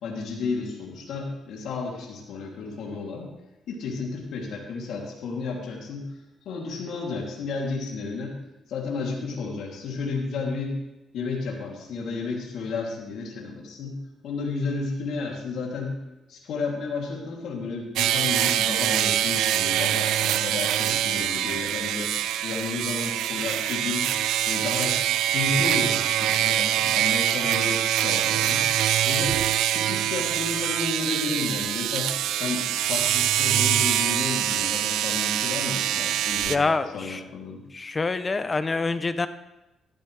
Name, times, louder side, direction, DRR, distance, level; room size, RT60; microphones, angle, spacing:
voice 1, 0.0-3.3 3.7-6.1 6.4-8.3 8.7-10.8 11.1-14.0 14.2-16.0 16.3-22.1 22.4-24.1 24.5-25.0 25.3-28.7 29.0-29.4 29.7-37.6, left 4 dB, 75° left, -2 dB, 2.9 m, -32 dB
sound 1, 18.0-36.6, right 12 dB, 85° right, 0.4 m, -24 dB
voice 2, 36.5-37.2 37.7-39.3, left 3 dB, 30° left, 12 dB, 0.6 m, -26 dB
14.0 x 13.0 x 3.3 m, 0.95 s
cardioid pair, 90°, 0 cm